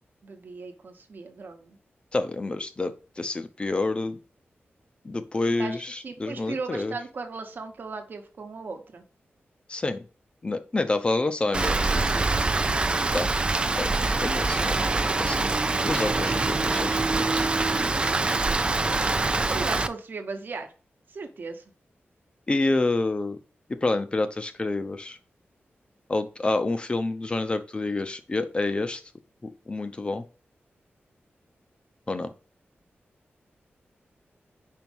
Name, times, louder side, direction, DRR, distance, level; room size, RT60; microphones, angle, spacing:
voice 1, 0.2-1.8 5.6-5.8 6.0-9.0 19.5-20.7 21.1-21.6, right 4 dB, 50° right, 6 dB, 1.0 m, -37 dB
voice 2, 2.1-4.2 5.0-6.9 9.7-10.0 10.4-11.9 12.1-12.3 13.1-13.3 13.8-15.5 15.8-17.5 22.5-23.4 23.7-25.2 26.1-29.0 29.4-30.2 32.1-32.3, left 2 dB, 25° left, 10 dB, 0.6 m, -28 dB
Rain, 11.5-19.9, right 3 dB, 25° right, 0.4 m, -24 dB
5.2 x 4.6 x 5.3 m, 0.35 s
wide cardioid pair, 175°, 4 cm